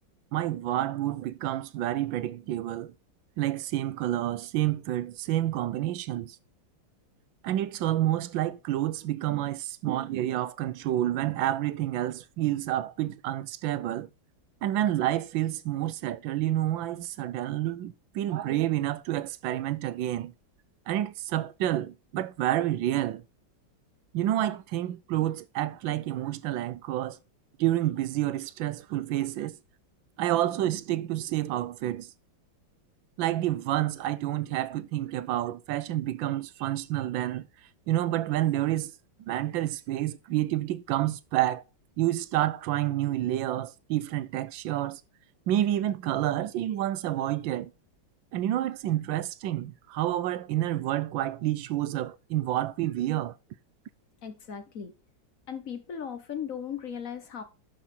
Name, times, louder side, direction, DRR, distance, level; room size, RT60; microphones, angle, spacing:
voice 1, 0.3-2.9 3.4-6.4 7.4-14.1 14.6-20.3 20.9-23.2 24.1-27.2 27.6-29.6 30.2-32.1 33.2-37.5 37.9-38.9 39.2-41.6 42.0-45.0 45.5-47.7 48.3-53.3, right 13 dB, 80° right, 1.4 m, -29 dB
voice 2, 54.2-54.9 55.5-57.4, left 8 dB, 50° left, 1.3 m, -37 dB
11.0 x 5.5 x 4.3 m
omnidirectional pair, 2.1 m